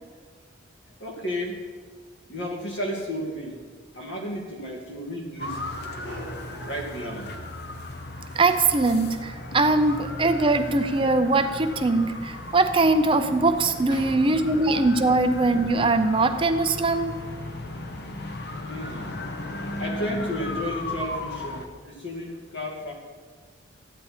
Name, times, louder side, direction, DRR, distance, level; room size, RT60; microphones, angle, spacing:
voice 1, 1.0-1.6 2.3-3.6 3.9-7.3 13.9-14.2 14.4-14.6 18.6-19.1 19.8-22.9, left 1 dB, 75° left, -1 dB, 2.5 m, -33 dB
sound 1, 5.4-21.7, left 1 dB, 60° left, 1.0 m, -36 dB
voice 2, 8.3-17.1, right 3 dB, 30° right, 8 dB, 0.6 m, -21 dB
14.5 x 9.4 x 4.4 m, 1.5 s
head